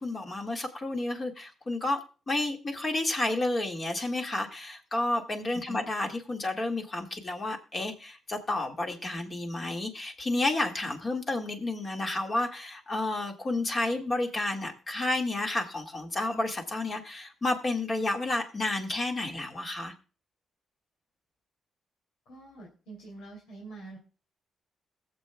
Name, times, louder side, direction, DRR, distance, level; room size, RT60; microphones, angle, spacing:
voice 1, 0.0-19.9, left 2 dB, 30° left, 3 dB, 1.8 m, -31 dB
voice 2, 5.5-5.8 22.3-24.0, right 3 dB, 85° left, -2 dB, 2.8 m, -45 dB
21.5 x 7.3 x 2.2 m, 0.34 s
cardioid pair, 115°, 0 cm